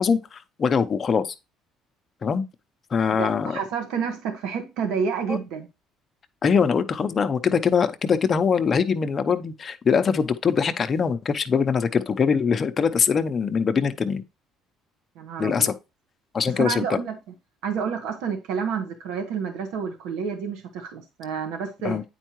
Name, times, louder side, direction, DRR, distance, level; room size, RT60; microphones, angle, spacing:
voice 1, 0.0-1.3 2.2-2.4 2.9-3.5 5.3-5.4 6.4-14.2 15.4-15.7 16.3-17.0 21.8-22.0, left 6 dB, 35° left, 0.7 m, -22 dB
voice 2, 3.2-5.7 15.1-15.7 16.5-17.2 17.6-22.0, right 6 dB, 85° right, 1.3 m, -29 dB
8.9 x 4.5 x 3.0 m
cardioid pair, 105°, 0 cm